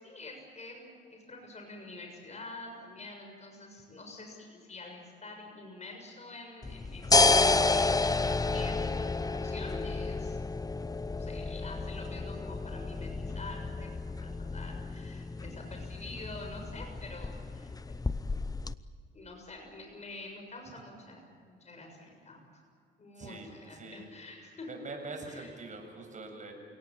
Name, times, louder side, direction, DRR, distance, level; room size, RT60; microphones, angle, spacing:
voice 1, 0.0-10.4 11.1-18.0 19.1-21.3 21.6-22.4 23.0-24.7 25.3-25.5, left 2 dB, 35° left, 2 dB, 6.8 m, -47 dB
sound 1, 6.6-18.7, left 3 dB, 20° left, 0.8 m, -30 dB
voice 2, 23.2-24.0 24.7-26.5, right 3 dB, 40° right, 3 dB, 7.4 m, -43 dB
29.0 x 18.0 x 8.9 m, 2.2 s
cardioid pair, 90°, 20 cm